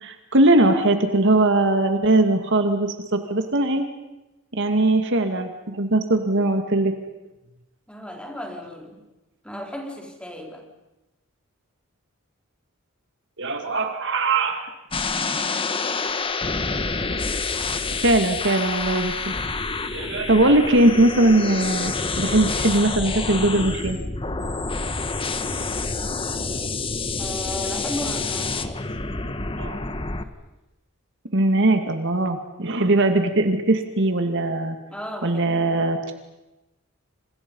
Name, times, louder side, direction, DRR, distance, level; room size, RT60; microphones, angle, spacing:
voice 1, 0.0-3.8 4.5-6.9 13.4-14.7 17.1-17.2 17.9-19.4 19.9-24.0 29.6-29.8 31.3-34.8 35.2-36.1, right 2 dB, 60° right, 6 dB, 2.3 m, -20 dB
voice 2, 7.9-9.0 9.4-10.7 27.2-28.9 34.9-36.1, left 1 dB, 5° left, 1 dB, 4.2 m, -35 dB
sound 1, 14.9-30.2, left 3 dB, 25° left, 1.5 m, -28 dB
29.5 x 28.0 x 5.6 m, 1.0 s
head